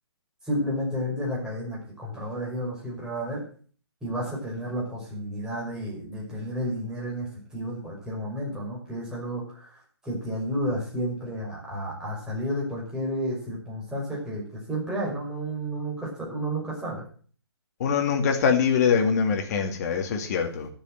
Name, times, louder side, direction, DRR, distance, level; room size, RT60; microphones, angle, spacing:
voice 1, 0.4-3.4 4.0-17.1, equal, 5° right, -4 dB, 5.5 m, -31 dB
voice 2, 17.8-20.7, left 6 dB, 40° left, 5 dB, 2.5 m, -23 dB
12.5 x 7.2 x 7.7 m, 0.43 s
hypercardioid pair, 145°, 14 cm